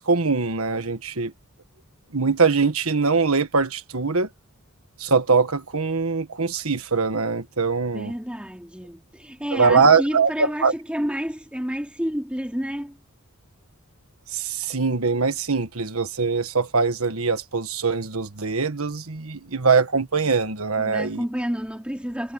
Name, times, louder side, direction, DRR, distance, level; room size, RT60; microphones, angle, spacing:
voice 1, 0.0-1.3 2.1-4.3 5.0-8.1 9.5-10.7 14.3-21.2, right 4 dB, 70° right, 1.5 m, -22 dB
voice 2, 7.9-13.0 20.8-22.3, equal, 5° right, 2.9 m, -30 dB
head